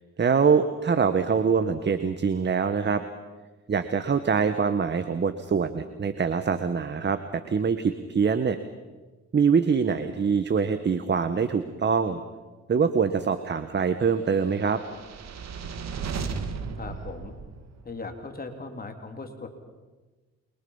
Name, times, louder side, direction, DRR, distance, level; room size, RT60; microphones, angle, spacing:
voice 1, 0.2-3.0 3.7-8.6 9.3-12.2 12.7-14.8, right 6 dB, 35° right, 10 dB, 1.3 m, -24 dB
sound 1, 14.6-18.0, right 5 dB, 60° right, 2.2 m, -35 dB
voice 2, 16.7-17.3 17.8-19.5, left 3 dB, 30° left, 5 dB, 3.1 m, -38 dB
29.0 x 23.0 x 5.6 m, 1.3 s
cardioid pair, 90°, 30 cm